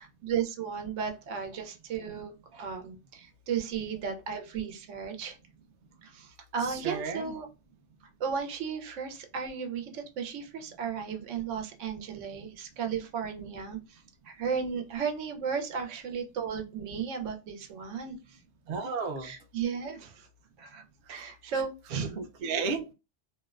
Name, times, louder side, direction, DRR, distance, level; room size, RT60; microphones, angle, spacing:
voice 1, 0.0-5.4 6.0-7.5 8.2-18.4 19.2-20.3 20.6-20.8 21.1-22.1, right 6 dB, 85° right, 5 dB, 0.9 m, -35 dB
voice 2, 6.7-7.3 18.7-19.3 22.0-22.9, right 5 dB, 60° right, 4 dB, 0.6 m, -33 dB
2.5 x 2.1 x 2.3 m, 0.29 s
omnidirectional pair, 1.2 m